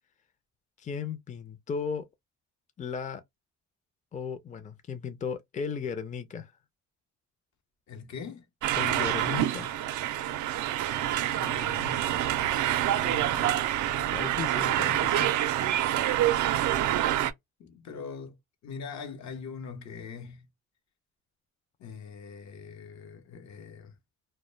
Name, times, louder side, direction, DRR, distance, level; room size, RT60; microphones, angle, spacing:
voice 1, 0.8-2.1 2.8-3.2 4.1-6.5 8.8-9.7 14.1-15.4, left 6 dB, 25° left, 0.5 m, -35 dB
voice 2, 7.9-8.5 11.3-12.3 13.0-13.6 17.6-20.5 21.8-23.9, left 5 dB, 65° left, 0.8 m, -42 dB
sound 1, 8.6-17.3, right 12 dB, 75° right, 0.4 m, -27 dB
2.2 x 2.1 x 3.1 m
cardioid pair, 90°, 30 cm